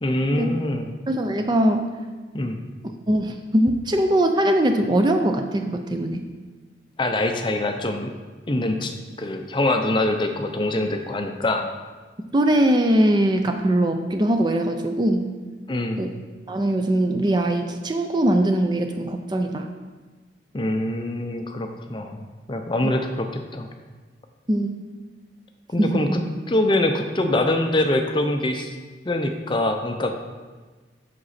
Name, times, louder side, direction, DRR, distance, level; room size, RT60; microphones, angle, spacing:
voice 1, 0.0-0.9 2.3-2.6 7.0-8.1 8.5-11.6 15.7-16.0 20.5-22.2 22.5-23.7 25.7-26.2 26.5-28.7 29.1-30.1, left 1 dB, 25° left, 5 dB, 0.5 m, -24 dB
voice 2, 1.1-1.9 3.1-6.2 12.3-15.3 16.0-16.1 16.5-19.7 22.8-22.9 24.5-24.7 25.8-26.0, right 1 dB, 25° right, 5 dB, 0.4 m, -21 dB
7.8 x 5.9 x 4.2 m, 1.3 s
head